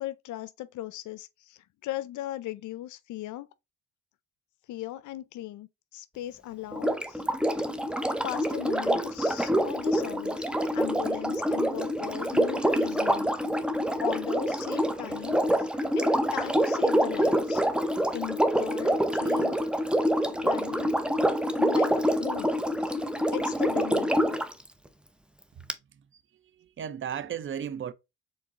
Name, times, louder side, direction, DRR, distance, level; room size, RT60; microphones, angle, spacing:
voice 1, 0.0-3.5 4.7-7.2 8.2-10.5 10.7-13.3 14.0-17.6 18.1-19.6 20.4-21.0 21.3-22.5 22.8-22.9 23.3-24.2, left 14 dB, 75° left, 0.5 m, -38 dB
Sink (filling or washing), 6.7-24.5 25.7-25.8, equal, 5° right, 0.6 m, -26 dB
voice 2, 25.5-26.2 26.5-27.9, right 8 dB, 40° right, 0.6 m, -36 dB
4.7 x 3.8 x 2.8 m
cardioid pair, 90°, 30 cm